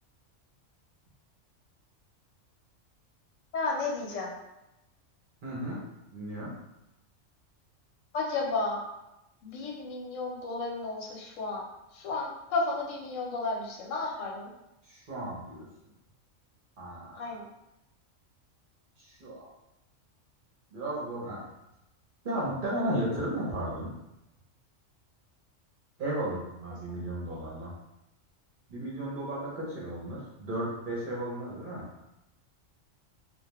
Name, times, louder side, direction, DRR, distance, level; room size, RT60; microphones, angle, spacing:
voice 1, 3.5-4.4 8.1-8.8 9.4-11.6 11.9-14.5 17.1-17.5 27.0-27.5, left 3 dB, 80° left, -2 dB, 1.0 m, -33 dB
voice 2, 5.4-5.8 6.1-6.5 14.8-15.7 16.8-17.2 19.0-19.5 20.7-21.4 22.2-23.9 26.0-27.7 28.7-31.9, right 1 dB, 55° right, -5 dB, 0.7 m, -34 dB
2.2 x 2.1 x 2.9 m, 0.90 s
omnidirectional pair, 1.3 m